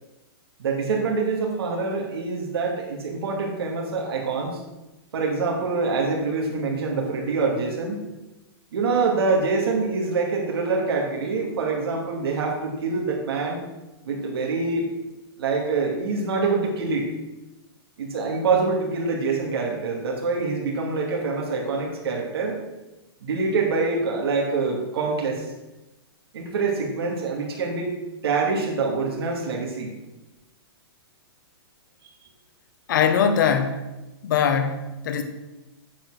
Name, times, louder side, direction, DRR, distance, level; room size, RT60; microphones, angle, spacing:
voice 1, 0.6-4.6 5.1-8.0 8.7-13.6 14.0-14.9 15.4-17.1 18.0-22.6 23.2-25.5 26.3-27.9 28.2-29.9, right 4 dB, 70° right, -1 dB, 2.5 m, -25 dB
voice 2, 32.9-33.9 34.2-35.2, left 7 dB, 50° left, 7 dB, 1.4 m, -22 dB
9.0 x 7.6 x 6.3 m, 1.0 s
hypercardioid pair, 170°, 13 cm